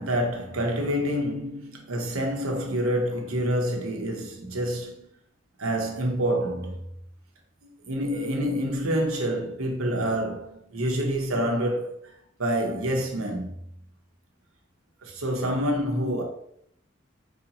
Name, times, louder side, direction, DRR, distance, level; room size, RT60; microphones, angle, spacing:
voice 1, 0.0-5.1 5.6-6.9 7.6-11.9 12.4-13.7 15.0-16.2, equal, 90° right, 0.9 m, -27 dB
4.9 x 2.6 x 2.9 m
head